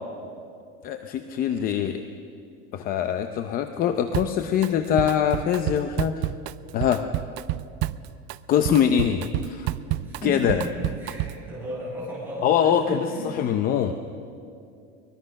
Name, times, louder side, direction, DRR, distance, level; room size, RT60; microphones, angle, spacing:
voice 1, 0.8-2.0 2.7-6.3 6.7-7.0 8.5-9.7 10.2-10.6 12.4-13.9, left 9 dB, 30° left, 8 dB, 0.7 m, -23 dB
Drum kit, 4.1-4.7 5.0-11.5, right 16 dB, 40° right, 0.4 m, -30 dB
voice 2, 10.0-13.3, right 1 dB, 5° right, -6 dB, 6.7 m, -35 dB
23.5 x 21.0 x 6.5 m, 2.5 s
cardioid pair, 175°, 29 cm